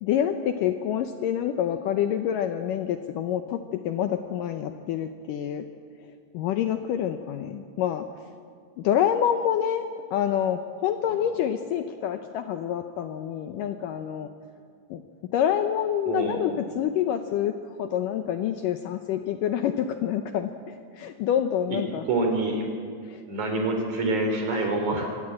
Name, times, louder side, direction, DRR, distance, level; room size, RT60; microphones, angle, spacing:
voice 1, 0.0-5.7 6.3-8.1 8.8-9.8 10.1-14.3 14.9-15.0 15.3-17.5 17.8-20.5 21.0-22.0 23.1-23.2, left 10 dB, 75° left, 8 dB, 2.1 m, -27 dB
voice 2, 16.1-16.4 21.7-21.8 22.1-22.7 23.3-25.2, right 2 dB, 50° right, 3 dB, 4.6 m, -26 dB
24.0 x 18.5 x 8.9 m, 2.1 s
omnidirectional pair, 4.5 m